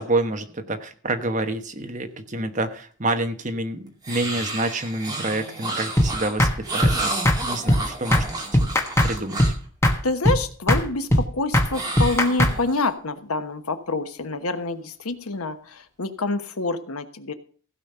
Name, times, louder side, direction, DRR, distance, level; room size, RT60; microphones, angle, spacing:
voice 1, 0.0-9.4, right 2 dB, 35° right, 7 dB, 1.2 m, -28 dB
sound 1, 4.0-9.7 11.7-12.9, right 2 dB, 20° right, 2.4 m, -31 dB
sound 2, 6.0-6.1 6.4-6.5 6.8-7.0 7.2-7.4 7.7-7.8 8.1-8.3 8.5-9.1 9.4-9.5 9.8-10.0 10.2-10.4 10.7-10.8 11.1-11.2 11.5-11.7 12.0-12.5, left 1 dB, 10° left, 1.2 m, -18 dB
voice 2, 10.0-17.3, left 3 dB, 90° left, 9 dB, 1.2 m, -27 dB
16.0 x 5.3 x 6.8 m, 0.43 s
head